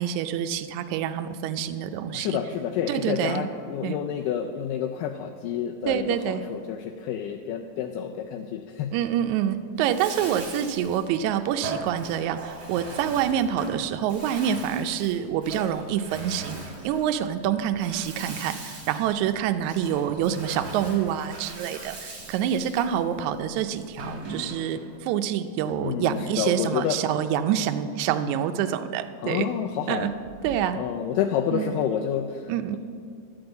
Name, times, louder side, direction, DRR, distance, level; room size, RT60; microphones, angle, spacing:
voice 1, 0.0-2.4 2.9-3.4 3.8-4.0 5.9-6.4 8.9-16.6 16.8-29.5 29.9-30.1 30.4-30.8 31.5-31.7 32.5-32.8, right 9 dB, 85° right, 8 dB, 1.7 m, -26 dB
voice 2, 2.1-9.0 25.8-27.0 29.2-30.1 30.7-32.8, left 9 dB, 80° left, 4 dB, 2.1 m, -29 dB
Bathtub (filling or washing), 9.8-24.9, right 3 dB, 40° right, 1.4 m, -40 dB
11.5 x 5.4 x 7.9 m, 2.2 s
omnidirectional pair, 3.9 m